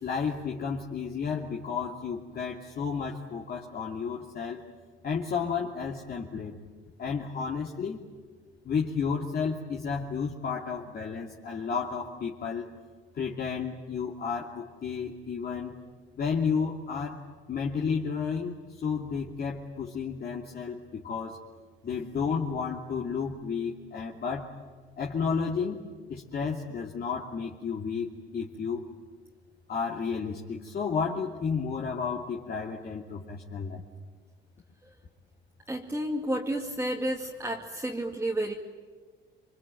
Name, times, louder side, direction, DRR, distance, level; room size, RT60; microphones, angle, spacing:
voice 1, 0.0-4.6 5.0-6.6 7.0-8.0 8.6-12.7 13.1-15.7 16.2-17.2 17.5-18.6 18.8-21.4 21.8-24.5 25.0-28.8 29.7-33.8, left 5 dB, 50° left, -2 dB, 2.8 m, -32 dB
voice 2, 35.7-38.5, right 1 dB, 10° right, -2 dB, 2.3 m, -31 dB
27.0 x 24.0 x 9.2 m, 1.5 s
cardioid pair, 115°, 21 cm